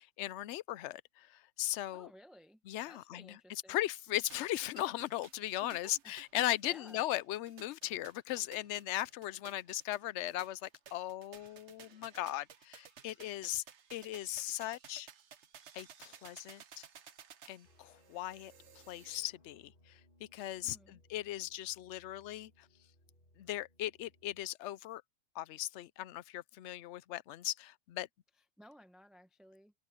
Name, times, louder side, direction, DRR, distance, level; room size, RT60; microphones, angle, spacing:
voice 1, 0.0-2.1 2.7-13.6 13.9-15.1 15.7-16.8 17.5-18.5 18.9-20.0 20.3-22.5 23.4-25.0 25.4-28.1, left 14 dB, 65° left, 0.8 m, -38 dB
voice 2, 1.9-3.8 5.6-6.1 6.6-7.0 20.6-21.0 28.4-29.7, equal, ahead, 0.9 m, -58 dB
sound 1, 4.3-19.3, right 8 dB, 60° right, 1.2 m, -57 dB
sound 2, 17.6-24.5, left 1 dB, 40° left, 2.9 m, -67 dB
omnidirectional pair, 1.4 m